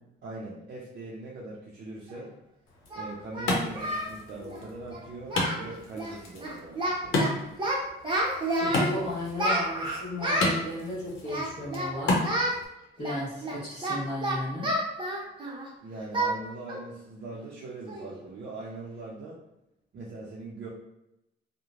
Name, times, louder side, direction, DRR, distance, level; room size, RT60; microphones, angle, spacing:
voice 1, 0.2-2.3 2.9-7.3 15.8-19.4 19.9-20.7, right 2 dB, 55° right, -5 dB, 0.6 m, -41 dB
Singing, 2.1-2.2 2.9-4.1 4.4-4.6 4.9-5.0 5.3-5.7 5.9-6.1 6.4-7.3 7.6-8.9 9.4-10.6 11.3-11.9 12.2-12.6 13.0-15.7 16.1-16.3 16.7-16.9 17.3-17.4 17.9-18.1, right 1 dB, 25° right, 0.8 m, -30 dB
Wood, 2.7-12.7, left 2 dB, 85° left, 0.7 m, -33 dB
voice 2, 8.6-12.2 13.0-14.7, left 1 dB, 25° left, -11 dB, 1.1 m, -34 dB
3.0 x 2.1 x 2.5 m, 0.90 s
cardioid pair, 90°, 20 cm